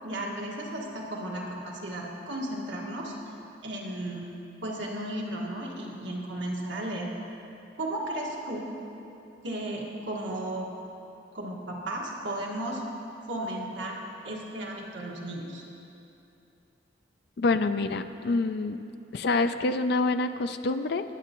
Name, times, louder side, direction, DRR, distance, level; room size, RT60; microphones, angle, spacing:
voice 1, 0.0-3.1 3.6-4.3 4.6-7.1 7.8-8.7 9.4-10.7 11.3-12.8 13.3-14.0 14.2-15.6, right 1 dB, 75° right, -2 dB, 1.7 m, -34 dB
voice 2, 17.4-18.8 19.1-21.0, left 3 dB, 55° left, 9 dB, 0.4 m, -26 dB
22.0 x 8.1 x 3.0 m, 2.8 s
head